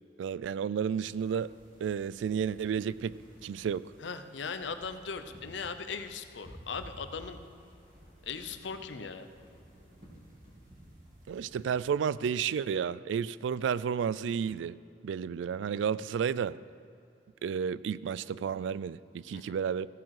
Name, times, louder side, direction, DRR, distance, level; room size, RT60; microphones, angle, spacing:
voice 1, 0.2-1.5 1.8-3.9 11.3-14.8 15.0-16.6 17.4-19.9, right 7 dB, 90° right, 0.3 m, -32 dB
sound 1, 1.0-11.9, equal, 45° right, 2.8 m, -54 dB
voice 2, 4.0-7.4 8.2-9.3 19.3-19.6, left 5 dB, 85° left, 0.7 m, -39 dB
15.5 x 7.5 x 4.8 m
head